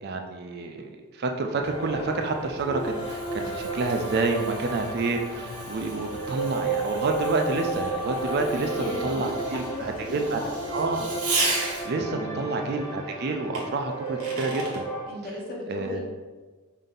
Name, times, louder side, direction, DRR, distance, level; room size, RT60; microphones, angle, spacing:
voice 1, 0.0-10.4 10.7-11.1 11.8-14.8 15.7-16.0, right 3 dB, 45° right, 4 dB, 0.4 m, -29 dB
sound 1, 1.6-11.2, left 4 dB, 75° left, 0.4 m, -47 dB
sound 2, 1.7-15.0, right 2 dB, 15° left, 0.8 m, -33 dB
Fireworks, 2.2-12.1 13.5-14.8, right 3 dB, 85° right, 1.3 m, -35 dB
voice 2, 8.7-10.7 12.0-12.4 15.1-16.0, left 1 dB, 40° left, -3 dB, 1.0 m, -36 dB
5.2 x 2.7 x 3.8 m, 1.3 s
head